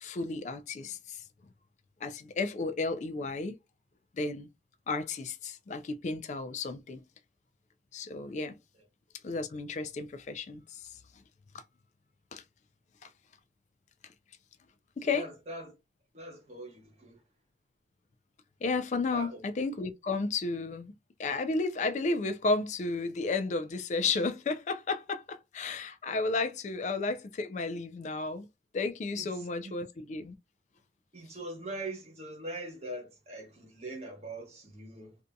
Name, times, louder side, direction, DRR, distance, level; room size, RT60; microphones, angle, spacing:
voice 1, 0.0-1.2 2.0-3.6 4.2-4.5 4.9-7.0 7.9-8.6 9.2-10.9 12.3-12.4 13.0-13.1 15.0-15.3 18.6-20.9 21.2-28.5 28.7-30.3, left 3 dB, 40° left, 0.3 m, -33 dB
voice 2, 15.0-15.7 16.1-17.2 19.1-19.4 29.2-29.7 31.1-35.2, right 1 dB, 35° right, 1.1 m, -42 dB
2.6 x 2.6 x 2.2 m
head